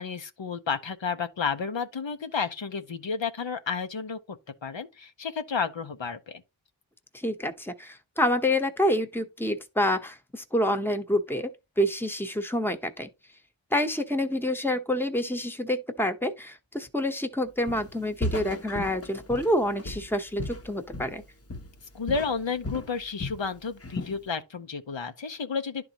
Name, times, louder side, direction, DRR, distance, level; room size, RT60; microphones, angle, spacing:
voice 1, 0.0-4.2 4.6-6.4 21.9-25.8, left 5 dB, 70° left, 0.8 m, -31 dB
voice 2, 7.1-11.5 11.8-13.1 13.7-21.2, left 1 dB, 5° left, 0.9 m, -27 dB
Walk footsteps, 17.7-18.0 18.2-21.2 21.5-21.8 22.1-23.5 23.8-24.2, left 1 dB, 30° left, 0.9 m, -35 dB
11.5 x 3.9 x 2.9 m
wide cardioid pair, 45°, 47 cm